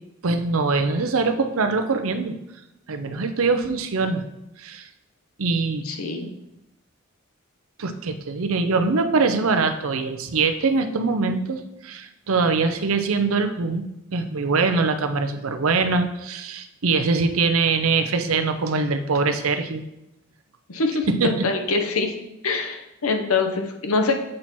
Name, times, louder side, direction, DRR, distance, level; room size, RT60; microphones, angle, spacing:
voice 1, 0.2-2.4 2.9-4.2 4.6-4.9 5.4-5.8 7.8-19.8 21.2-21.4, right 4 dB, 85° right, 7 dB, 0.6 m, -23 dB
voice 2, 5.8-6.3 20.7-22.1 22.4-24.1, left 3 dB, 90° left, 5 dB, 0.8 m, -24 dB
7.5 x 4.5 x 4.3 m, 0.89 s
head